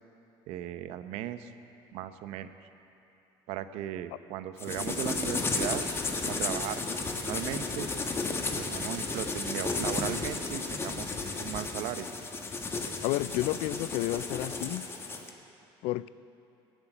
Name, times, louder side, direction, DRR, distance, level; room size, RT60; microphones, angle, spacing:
voice 1, 0.5-1.5 1.9-2.5 3.5-5.8 6.3-6.8 7.2-7.9 8.6-11.1 11.4-12.1, right 12 dB, 80° right, 11 dB, 0.8 m, -37 dB
sound 1, 4.6-15.3, left 3 dB, 25° left, 1.3 m, -33 dB
voice 2, 13.0-14.9 15.8-16.1, left 17 dB, 80° left, 18 dB, 0.4 m, -31 dB
16.0 x 8.1 x 9.1 m, 2.9 s
cardioid pair, 125°, 10 cm